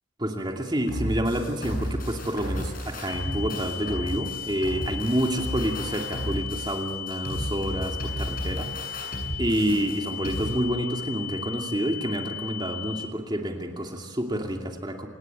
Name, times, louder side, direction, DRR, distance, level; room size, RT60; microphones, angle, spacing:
voice 1, 0.2-9.0 9.4-15.1, right 1 dB, 20° right, 3 dB, 2.5 m, -28 dB
sound 1, 0.9-10.6, equal, 45° left, 7.6 m, -33 dB
sound 2, 3.1-13.1, left 9 dB, 15° left, 1.7 m, -37 dB
28.0 x 19.5 x 9.1 m, 1.2 s
head